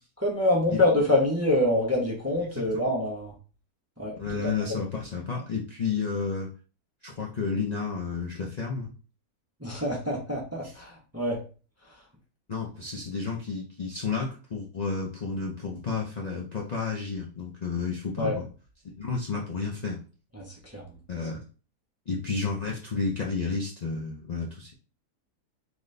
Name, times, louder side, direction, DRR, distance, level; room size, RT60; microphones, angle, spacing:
voice 1, 0.2-3.3 4.0-4.2 4.4-4.8 9.6-11.4 18.2-18.4 20.3-20.8, left 1 dB, 15° right, -2 dB, 0.5 m, -26 dB
voice 2, 2.5-2.9 4.2-6.5 7.0-8.9 10.6-10.7 12.5-18.4 18.9-20.0 21.1-21.4 22.1-24.7, left 4 dB, 75° left, -2 dB, 0.3 m, -31 dB
3.9 x 3.0 x 3.2 m, 0.37 s
omnidirectional pair, 1.7 m